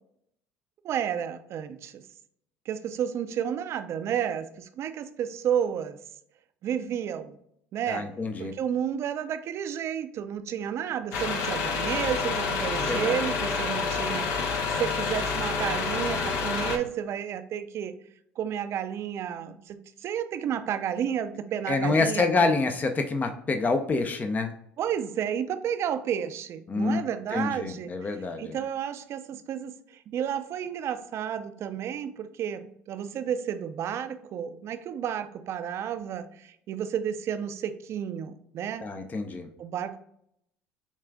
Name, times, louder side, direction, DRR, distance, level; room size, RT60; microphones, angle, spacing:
voice 1, 0.8-2.0 2.7-6.0 6.6-7.4 7.7-8.1 8.4-18.0 18.4-22.5 24.8-38.9 39.6-40.0, right 9 dB, 55° right, 10 dB, 0.5 m, -31 dB
voice 2, 7.9-8.5 12.8-13.2 14.1-14.3 21.7-24.5 26.7-27.0 27.3-28.6 38.8-39.5, left 3 dB, 30° left, 6 dB, 0.6 m, -27 dB
sound 1, 11.1-16.8, left 5 dB, 65° left, 0.8 m, -28 dB
7.1 x 2.4 x 2.3 m, 0.71 s
hypercardioid pair, 75°, 6 cm